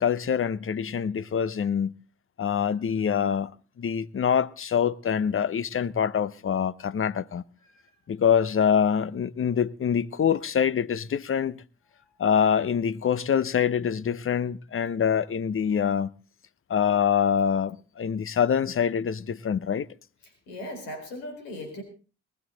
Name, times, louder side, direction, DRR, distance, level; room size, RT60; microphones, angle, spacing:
voice 1, 0.0-1.9 2.4-3.5 3.8-7.4 8.1-11.6 12.2-16.1 16.7-19.9, left 7 dB, 40° left, 0.9 m, -25 dB
voice 2, 20.2-21.8, left 1 dB, 80° left, 4.5 m, -39 dB
19.5 x 13.5 x 4.0 m
hypercardioid pair, 45°, 34 cm